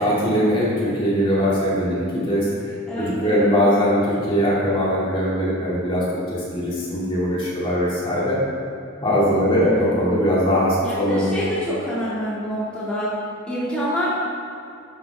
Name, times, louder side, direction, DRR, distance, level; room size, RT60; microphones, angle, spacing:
voice 1, 0.0-2.5 3.0-6.0 6.3-8.4 9.0-11.3, equal, 25° left, -7 dB, 2.4 m, -21 dB
voice 2, 2.9-3.4 9.4-9.9 10.8-13.2 13.5-14.1, equal, 5° left, -11 dB, 2.1 m, -26 dB
11.0 x 7.7 x 3.5 m, 2.4 s
head